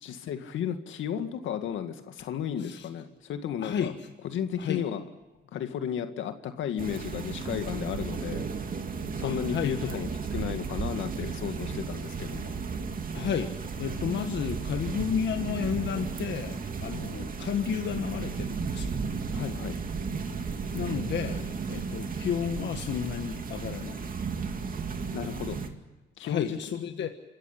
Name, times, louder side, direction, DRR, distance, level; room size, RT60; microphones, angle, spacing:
voice 1, 0.0-3.9 4.2-5.0 5.5-8.5 9.2-12.6 19.3-19.8 25.1-25.6 26.2-26.6, left 9 dB, 80° left, 8 dB, 2.1 m, -34 dB
voice 2, 3.6-4.0 4.6-4.8 9.2-10.0 13.1-18.9 20.7-24.1 26.2-27.1, left 8 dB, 65° left, 6 dB, 1.6 m, -32 dB
sound 1, 6.8-25.7, right 5 dB, 45° right, 2.5 m, -34 dB
27.0 x 14.0 x 10.0 m, 1.1 s
cardioid pair, 90°, 20 cm